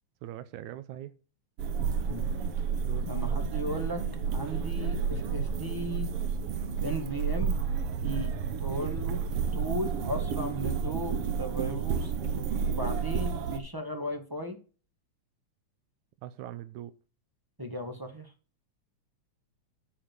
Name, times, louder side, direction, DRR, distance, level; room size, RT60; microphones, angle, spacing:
voice 1, 0.2-1.1 2.8-3.1 16.2-16.9, right 12 dB, 85° right, 14 dB, 2.1 m, -41 dB
sound 1, 1.6-13.6, right 6 dB, 60° right, 1.7 m, -31 dB
voice 2, 3.1-4.0 4.3-6.1 6.8-7.6 8.0-8.3 8.6-9.2 9.5-12.1 12.6-14.6 17.6-18.3, equal, 15° right, 4 dB, 0.7 m, -36 dB
11.5 x 4.9 x 6.6 m, 0.36 s
omnidirectional pair, 3.4 m